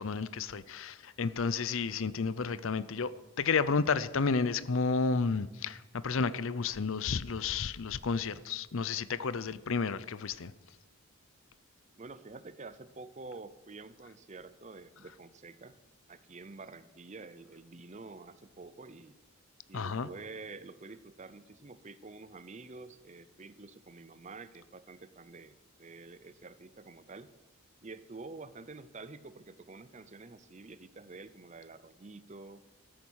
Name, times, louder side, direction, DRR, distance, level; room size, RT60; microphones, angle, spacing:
voice 1, 0.0-3.1 3.4-10.5 19.7-20.1, left 4 dB, 60° left, 0.6 m, -31 dB
voice 2, 12.0-15.7 16.1-19.2 19.7-27.3 27.8-32.6, right 3 dB, 30° right, 0.6 m, -48 dB
13.5 x 13.0 x 6.3 m
head